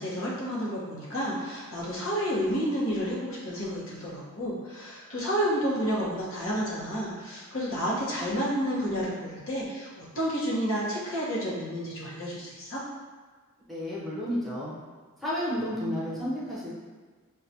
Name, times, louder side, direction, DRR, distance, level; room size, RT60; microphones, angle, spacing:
voice 1, 0.0-12.8, equal, 65° left, -6 dB, 1.0 m, -30 dB
voice 2, 13.7-14.7 15.2-16.8, equal, ahead, -9 dB, 0.7 m, -31 dB
5.6 x 2.3 x 2.7 m, 1.5 s
head